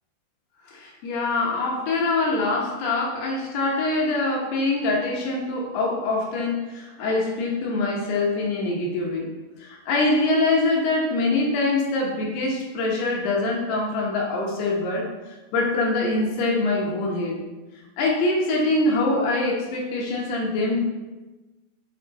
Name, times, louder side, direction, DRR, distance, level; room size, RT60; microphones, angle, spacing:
voice 1, 0.7-9.3 9.6-15.1 15.5-17.4 18.0-20.8, left 2 dB, 75° left, -2 dB, 2.9 m, -24 dB
10.5 x 3.8 x 4.0 m, 1.2 s
omnidirectional pair, 4.9 m